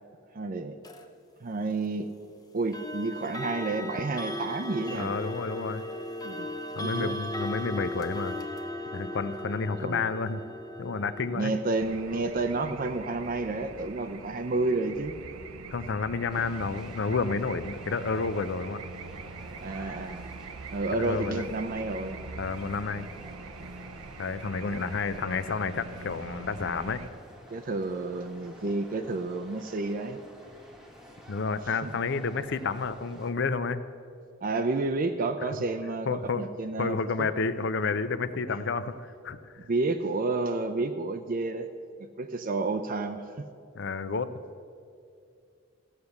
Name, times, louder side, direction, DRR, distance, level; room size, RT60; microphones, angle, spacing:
voice 1, 0.3-0.8 1.4-2.1 2.5-5.1 6.2-6.5 6.8-7.2 9.8-10.0 11.3-15.1 19.6-20.2 20.7-22.2 27.5-30.2 31.8-31.9 34.4-37.3 39.6-41.7 42.0-43.5, right 3 dB, 40° right, 6 dB, 0.5 m, -30 dB
sound 1, 0.8-1.0 2.7-15.6, left 1 dB, 20° left, 0.7 m, -38 dB
voice 2, 5.0-5.8 6.7-8.3 8.9-10.4 10.8-11.5 15.7-18.8 20.9-21.4 22.4-23.1 24.2-27.0 31.3-33.8 36.1-36.4 36.8-39.5 43.7-44.3, left 4 dB, 55° left, 13 dB, 0.6 m, -30 dB
sound 2, 11.8-27.1, right 4 dB, 85° right, 0.7 m, -43 dB
sound 3, 16.3-33.3, equal, 5° right, 1.1 m, -51 dB
15.0 x 6.5 x 7.1 m, 2.5 s
head